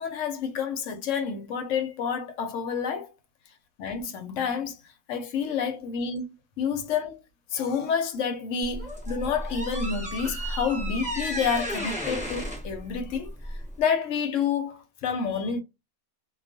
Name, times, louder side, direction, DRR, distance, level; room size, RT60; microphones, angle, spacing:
voice 1, 0.0-3.1 3.8-4.8 5.1-6.2 6.6-7.2 7.5-13.3 13.8-15.6, left 6 dB, 70° left, 0.8 m, -29 dB
sound 1, 8.6-13.8, equal, 5° right, 0.7 m, -33 dB
2.3 x 2.3 x 2.5 m
omnidirectional pair, 1.5 m